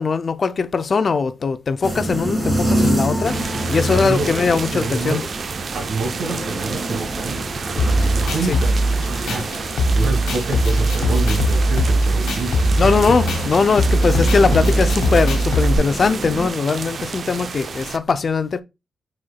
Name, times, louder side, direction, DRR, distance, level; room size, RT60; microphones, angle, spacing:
voice 1, 0.0-5.2 8.5-8.6 12.8-18.6, left 5 dB, 50° left, 0.4 m, -20 dB
sound 1, 1.8-16.5, right 1 dB, 25° right, 2.2 m, -27 dB
sound 2, 3.2-18.0, right 5 dB, 55° right, 0.4 m, -31 dB
voice 2, 3.9-5.3 5.7-13.0, right 3 dB, 75° right, 1.3 m, -28 dB
sound 3, 7.8-15.8, right 1 dB, 90° left, 1.2 m, -20 dB
4.7 x 4.3 x 2.2 m
cardioid pair, 75°, 0 cm